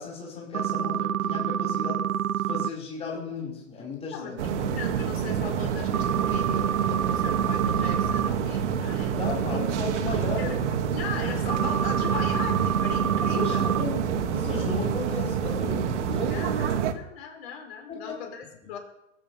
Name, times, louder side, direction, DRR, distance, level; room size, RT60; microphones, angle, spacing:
voice 1, 0.0-2.0 2.3-4.4 9.1-10.5 13.2-16.5 17.9-18.1, left 4 dB, 15° left, -3 dB, 4.8 m, -35 dB
sound 1, 0.5-2.7 5.9-8.3 11.5-13.8, right 9 dB, 80° right, 0.8 m, -27 dB
voice 2, 4.1-9.1 9.5-9.6 10.0-13.7 16.3-18.8, left 7 dB, 45° left, 2 dB, 5.5 m, -38 dB
sound 2, 4.4-16.9, right 7 dB, 55° right, 2.1 m, -27 dB
21.0 x 8.6 x 7.2 m, 0.82 s
hypercardioid pair, 125°, 41 cm